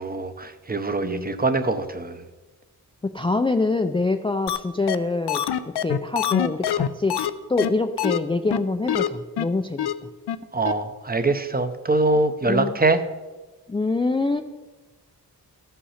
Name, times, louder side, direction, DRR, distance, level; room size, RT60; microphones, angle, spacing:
voice 1, 0.0-2.2 10.5-13.0, right 2 dB, 25° right, 10 dB, 0.7 m, -23 dB
voice 2, 3.0-5.4 5.8-7.2 7.5-9.9 12.5-12.7 13.7-14.4, left 3 dB, 15° left, 7 dB, 0.4 m, -25 dB
sound 1, 4.5-4.6 4.9-5.0 5.3-7.3 7.6-7.7 8.0-8.2 8.5-8.6 8.9-9.1 9.4-9.5 9.8-9.9 10.3-10.4 10.7-10.8, left 10 dB, 85° left, 0.6 m, -24 dB
13.5 x 5.7 x 5.7 m, 1.2 s
wide cardioid pair, 105°, 39 cm